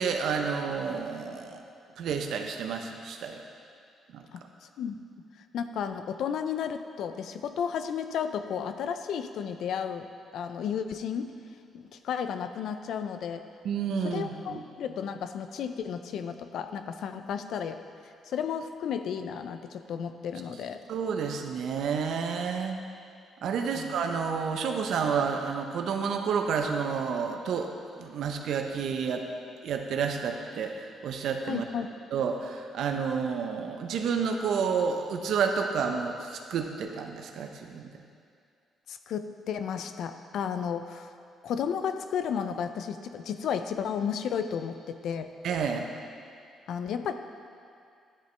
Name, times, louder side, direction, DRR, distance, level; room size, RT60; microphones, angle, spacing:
voice 1, 0.0-1.6 2.0-3.4 4.1-4.2 13.6-14.6 20.9-22.8 23.4-27.7 28.0-29.2 29.6-31.6 32.1-37.9 45.4-45.9, right 6 dB, 75° right, 4 dB, 0.7 m, -30 dB
voice 2, 4.3-5.0 5.5-10.1 10.3-11.3 11.7-13.4 14.0-17.8 18.2-20.8 23.7-24.0 31.5-31.9 38.9-41.1 41.4-45.3 46.7-47.1, left 7 dB, 75° left, 9 dB, 0.4 m, -33 dB
10.5 x 6.6 x 3.3 m, 2.3 s
cardioid pair, 90°, 0 cm